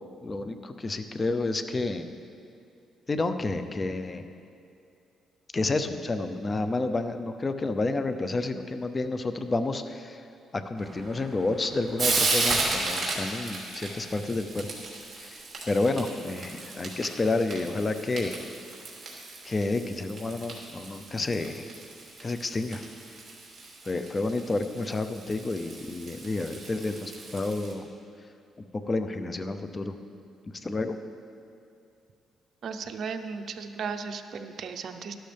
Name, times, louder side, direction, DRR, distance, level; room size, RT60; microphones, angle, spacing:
voice 1, 0.2-2.1 3.1-4.3 5.5-10.3 10.5-14.7 15.1-18.4 19.4-21.7 22.2-22.8 23.8-27.9 28.9-30.0 30.5-31.0, left 2 dB, 30° left, 9 dB, 0.7 m, -30 dB
Frying (food), 10.8-27.7, right 3 dB, 35° right, 2.8 m, -35 dB
voice 2, 32.6-35.2, right 5 dB, 60° right, 7 dB, 0.7 m, -35 dB
12.5 x 12.0 x 3.5 m, 2.5 s
cardioid pair, 90°, 0 cm